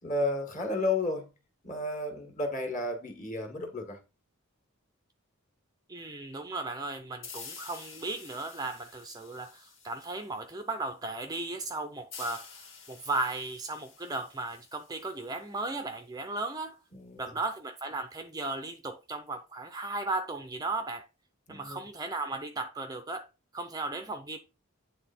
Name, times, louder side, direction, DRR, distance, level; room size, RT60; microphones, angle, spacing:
voice 1, 0.0-1.3 1.6-4.0 16.9-17.3 21.5-21.9, left 2 dB, 35° left, 1.7 m, -32 dB
voice 2, 5.9-16.8 17.2-21.0 21.5-23.3 23.5-24.4, right 2 dB, 20° right, 0.5 m, -36 dB
sound 1, 7.2-10.6 12.1-15.6, left 5 dB, 65° left, 1.9 m, -49 dB
9.1 x 3.5 x 4.3 m
head